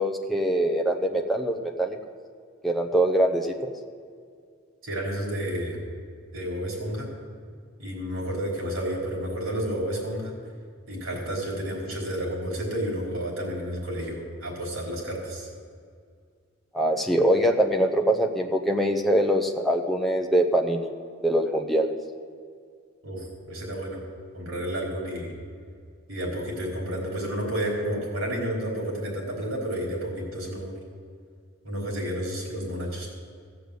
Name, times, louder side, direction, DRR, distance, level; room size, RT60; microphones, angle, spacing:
voice 1, 0.0-2.0 2.6-3.7 16.7-20.9 21.2-21.9, right 1 dB, ahead, 2 dB, 0.8 m, -23 dB
voice 2, 4.8-5.8 6.3-7.1 7.8-10.4 10.9-15.5 23.0-24.0 24.3-25.3 26.1-30.7 31.6-33.1, equal, 75° right, -2 dB, 4.4 m, -31 dB
16.0 x 6.8 x 8.0 m, 2.1 s
head